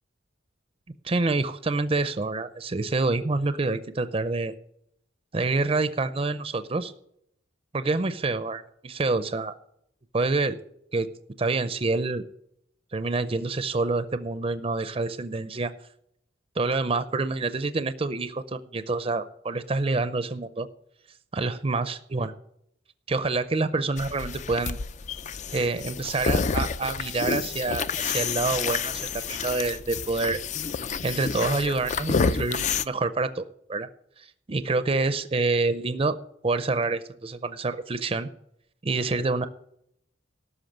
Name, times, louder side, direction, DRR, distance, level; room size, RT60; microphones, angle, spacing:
voice 1, 1.0-4.5 5.3-6.9 7.7-9.5 10.1-10.6 10.9-11.1 11.4-12.2 12.9-15.7 16.6-20.7 21.3-22.3 23.1-24.8 25.5-30.4 31.0-33.9 34.2-36.1 36.4-38.3 38.8-39.5, right 3 dB, 30° right, 11 dB, 0.5 m, -27 dB
sound 1, 24.0-32.8, left 5 dB, 40° left, 0.4 m, -29 dB
13.0 x 5.7 x 8.7 m, 0.72 s
head